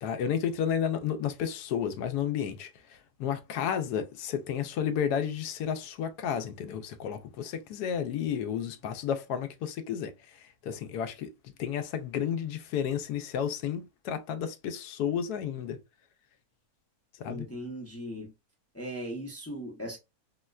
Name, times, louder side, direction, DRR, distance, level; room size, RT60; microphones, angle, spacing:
voice 1, 0.0-15.8 17.2-17.5, left 8 dB, 85° left, 1.1 m, -32 dB
voice 2, 17.3-18.3 18.7-20.0, equal, 15° left, 0.4 m, -38 dB
4.3 x 2.1 x 2.3 m
omnidirectional pair, 1.6 m